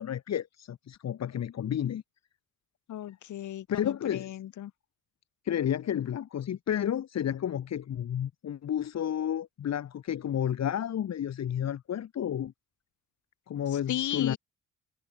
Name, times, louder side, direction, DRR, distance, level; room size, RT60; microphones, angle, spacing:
voice 1, 0.0-2.0 3.7-4.4 5.4-12.5 13.5-14.4, left 10 dB, 60° left, 2.5 m, -31 dB
voice 2, 2.9-4.7 13.9-14.4, left 12 dB, 75° left, 6.7 m, -35 dB
cardioid pair, 90°, 30 cm